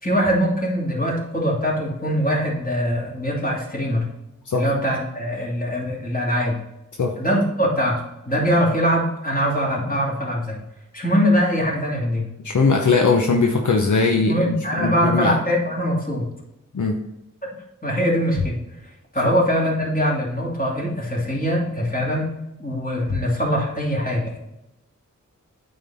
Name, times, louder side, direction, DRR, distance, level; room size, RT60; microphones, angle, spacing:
voice 1, 0.0-4.1 4.5-6.6 7.2-10.6 10.9-12.3 14.3-16.3 17.8-18.6 19.1-22.3 22.6-24.4, equal, 25° left, -4 dB, 2.7 m, -22 dB
voice 2, 12.4-15.3 16.7-17.0, left 4 dB, 70° left, 1 dB, 0.8 m, -20 dB
8.8 x 3.9 x 4.2 m, 0.92 s
wide cardioid pair, 65°, 31 cm